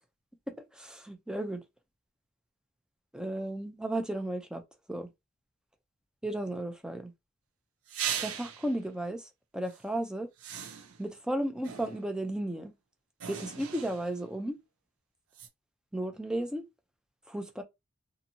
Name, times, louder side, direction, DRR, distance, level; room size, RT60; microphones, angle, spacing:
voice 1, 0.7-1.6 3.1-4.6 4.9-5.1 6.2-7.1 8.2-10.3 11.0-12.7 13.3-14.6 15.9-16.6 17.3-17.6, right 1 dB, 5° right, 0.4 m, -34 dB
sound 1, 7.9-8.8 9.7-9.8 10.4-11.1 11.6-12.2 13.2-14.3 15.3-15.5, right 8 dB, 75° right, 0.5 m, -38 dB
2.6 x 2.6 x 2.7 m
head